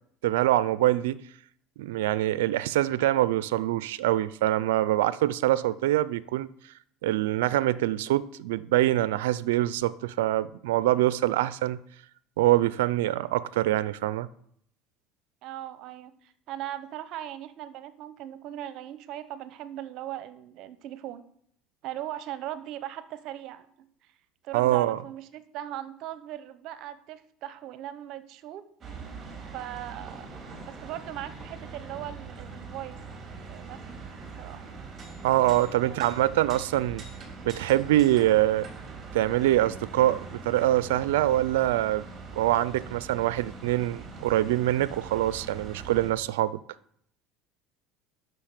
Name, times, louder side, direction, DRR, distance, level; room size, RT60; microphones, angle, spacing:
voice 1, 0.2-1.2 1.8-6.5 7.0-11.8 12.4-14.3 24.5-25.0 35.2-37.0 37.4-38.7 39.1-42.1 42.3-46.6, right 14 dB, 90° right, 0.4 m, -24 dB
voice 2, 15.4-21.2 21.8-23.9 24.4-28.6 29.5-30.3 30.6-33.0 33.5-34.1 34.4-34.6 35.8-36.1, right 12 dB, 60° right, 0.9 m, -39 dB
sound 1, 28.8-46.1, right 4 dB, 30° right, 3.2 m, -42 dB
10.0 x 6.5 x 6.7 m
supercardioid pair, 100°, 0 cm